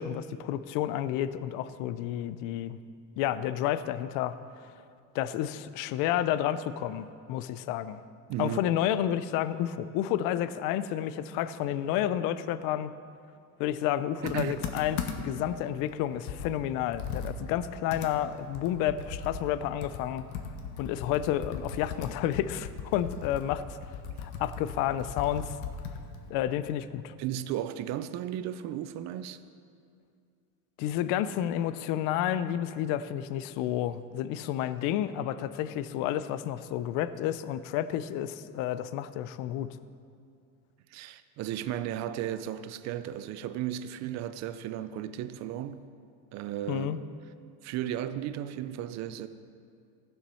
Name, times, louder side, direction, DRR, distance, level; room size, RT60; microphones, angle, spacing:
voice 1, 0.0-2.8 3.2-4.4 5.1-8.0 8.4-12.9 13.6-20.2 20.8-23.8 24.2-25.6 26.3-27.1 30.8-39.7 46.7-47.0, left 11 dB, 50° left, 0.5 m, -30 dB
voice 2, 8.3-8.6 14.2-14.6 24.1-24.2 27.2-29.4 40.9-45.8 46.3-47.0 47.6-49.3, right 11 dB, 40° right, 0.5 m, -35 dB
Computer keyboard, 14.3-15.4 15.9-16.0 16.3-19.6 19.8-26.3, left 6 dB, 75° left, 1.3 m, -38 dB
15.5 x 7.2 x 5.5 m
cardioid pair, 150°, 45 cm